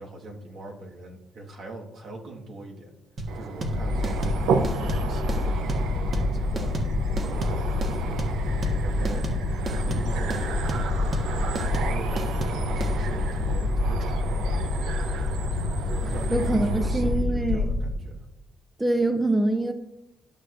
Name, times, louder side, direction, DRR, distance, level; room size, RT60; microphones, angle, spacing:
voice 1, 0.0-2.9 3.3-9.3 9.8-11.4 11.7-14.5 16.0-18.3, right 2 dB, 65° right, 0 dB, 1.6 m, -41 dB
sound 1, 3.2-12.9, right 3 dB, 50° right, 1.4 m, -32 dB
sound 2, 3.3-17.2, right 5 dB, 90° right, 0.7 m, -34 dB
sound 3, 3.6-17.9, left 2 dB, 75° left, 1.1 m, -27 dB
voice 2, 16.3-17.7 18.8-19.7, right 2 dB, 10° right, 7 dB, 0.5 m, -24 dB
12.5 x 6.4 x 2.5 m, 0.94 s
cardioid pair, 90°, 0 cm